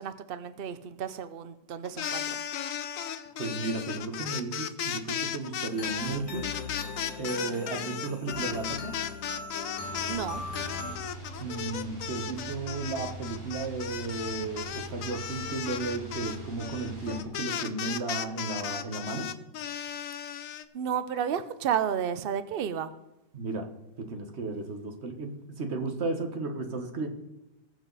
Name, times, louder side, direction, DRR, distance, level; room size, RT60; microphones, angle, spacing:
voice 1, 0.0-2.4 10.1-10.4 20.7-22.9, right 8 dB, 85° right, 12 dB, 0.5 m, -32 dB
sound 1, 1.8-10.3 10.5-20.6, left 9 dB, 60° left, 0.9 m, -35 dB
voice 2, 3.4-6.5 7.2-9.0 11.4-19.3 23.3-23.7 24.0-27.1, right 3 dB, 40° right, 4 dB, 1.6 m, -34 dB
sound 2, 5.7-11.0, left 4 dB, 80° left, 2.2 m, -39 dB
sound 3, 9.8-17.2, right 2 dB, 10° left, 5.0 m, -43 dB
20.5 x 7.3 x 4.1 m, 0.96 s
omnidirectional pair, 1.9 m